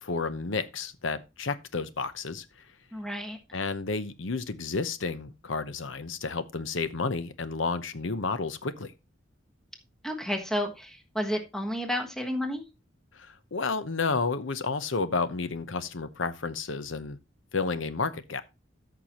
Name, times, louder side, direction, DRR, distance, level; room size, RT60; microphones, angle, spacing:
voice 1, 0.0-2.4 3.5-8.9 13.2-17.2 17.5-18.4, left 4 dB, 75° left, 0.9 m, -31 dB
voice 2, 2.9-3.4 10.0-12.6, equal, 5° left, 1.3 m, -31 dB
13.5 x 6.0 x 3.0 m
head